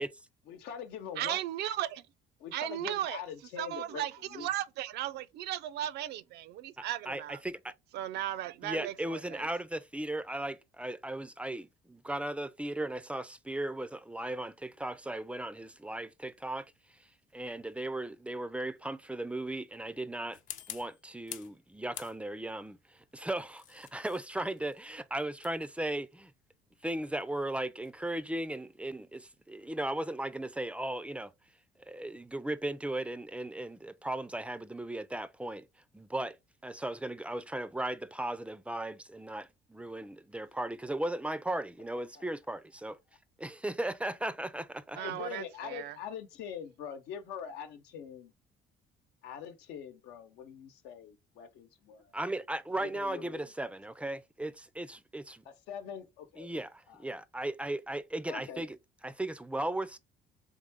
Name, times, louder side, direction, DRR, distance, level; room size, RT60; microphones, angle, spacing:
voice 1, 0.5-1.4 2.4-4.5 45.0-48.3 49.2-52.1 52.8-53.4 55.4-56.5 56.9-57.0 58.3-58.7, left 8 dB, 90° left, 0.9 m, -43 dB
voice 2, 1.2-2.0 2.5-3.2 3.6-7.4 7.9-8.9 45.0-45.9, right 12 dB, 75° right, 0.5 m, -36 dB
voice 3, 6.8-7.7 8.6-16.7 17.3-20.4 20.7-26.3 26.8-31.3 31.9-35.7 35.9-36.4 36.6-43.0 43.4-45.0 52.1-55.4 56.4-58.8 59.0-60.0, right 1 dB, 5° right, 0.4 m, -37 dB
sound 1, 20.3-21.6 21.9-22.6 23.3-28.0, left 9 dB, 50° left, 0.5 m, -48 dB
3.7 x 3.6 x 3.5 m
cardioid pair, 110°, 17 cm